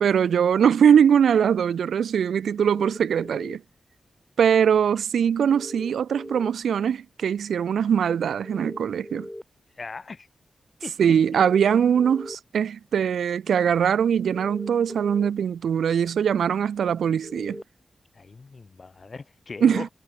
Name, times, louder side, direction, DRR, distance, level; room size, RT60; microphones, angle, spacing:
voice 1, 0.0-3.6 4.4-9.3 11.0-17.6 19.6-19.9, right 8 dB, 85° right, 0.5 m, -21 dB
sound 1, 2.6-3.6 5.5-6.5 8.4-9.4 11.4-12.4 14.3-15.3 17.2-17.6, left 1 dB, 15° left, 0.8 m, -39 dB
voice 2, 9.8-10.3 10.8-11.2 18.1-19.9, left 4 dB, 50° left, 4.7 m, -38 dB
cardioid pair, 45°, 0 cm